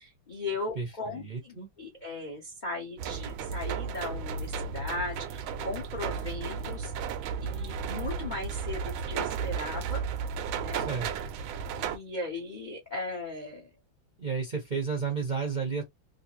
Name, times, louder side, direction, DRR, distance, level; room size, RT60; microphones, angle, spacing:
voice 1, 0.0-6.9 7.4-10.0 10.5-10.9 11.8-13.7, left 2 dB, 50° left, 0.5 m, -37 dB
voice 2, 0.7-1.7 10.7-11.1 14.2-15.8, right 5 dB, 40° right, 0.6 m, -32 dB
sound 1, 3.0-12.0, right 6 dB, 85° right, 1.4 m, -34 dB
3.3 x 2.7 x 2.8 m
omnidirectional pair, 2.1 m